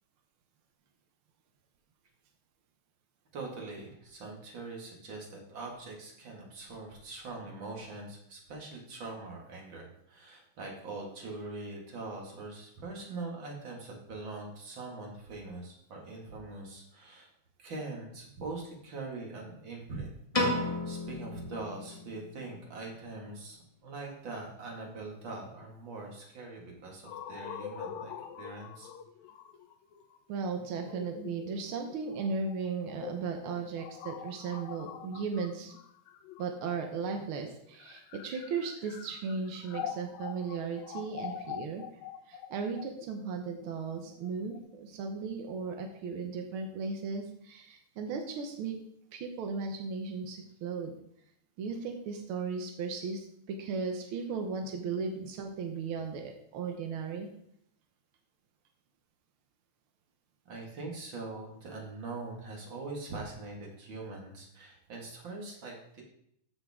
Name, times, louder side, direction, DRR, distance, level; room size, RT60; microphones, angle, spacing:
voice 1, 3.3-17.3 17.6-20.1 20.6-28.9 60.5-66.0, right 3 dB, 45° right, -1 dB, 2.3 m, -42 dB
Piano, 20.3-22.6, left 1 dB, 30° left, 0.6 m, -33 dB
sound 1, 27.1-36.9 37.6-44.6, left 8 dB, 75° left, 1.8 m, -44 dB
voice 2, 30.3-35.7 36.4-41.8 42.3-48.8 49.1-51.0 51.6-57.3, right 5 dB, 75° right, 4 dB, 1.2 m, -36 dB
14.0 x 5.7 x 3.6 m, 0.72 s
omnidirectional pair, 3.6 m